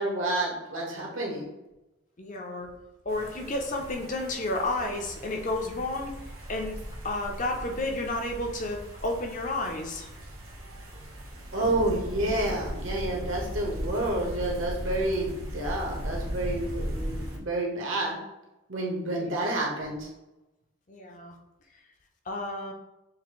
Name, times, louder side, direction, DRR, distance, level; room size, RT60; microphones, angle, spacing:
voice 1, 0.0-1.5 11.5-18.2 18.7-20.1, right 1 dB, 70° right, -2 dB, 1.2 m, -29 dB
voice 2, 2.2-2.7 3.1-6.1 6.5-6.8 7.0-10.1 19.1-19.4 20.9-21.4 22.3-22.7, left 2 dB, 35° left, 2 dB, 0.6 m, -31 dB
sound 1, 3.1-17.4, equal, 90° right, 1.1 m, -37 dB
6.6 x 2.6 x 3.1 m, 0.97 s
head